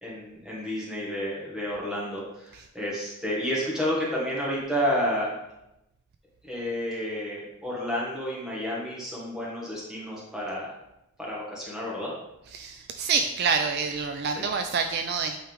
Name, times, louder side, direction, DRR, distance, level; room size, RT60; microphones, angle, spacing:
voice 1, 0.0-5.3 6.4-10.7 11.2-12.1 14.3-14.5, equal, 5° right, -6 dB, 1.6 m, -30 dB
voice 2, 12.5-15.4, right 5 dB, 45° right, 6 dB, 0.3 m, -27 dB
8.6 x 3.5 x 3.5 m, 0.88 s
head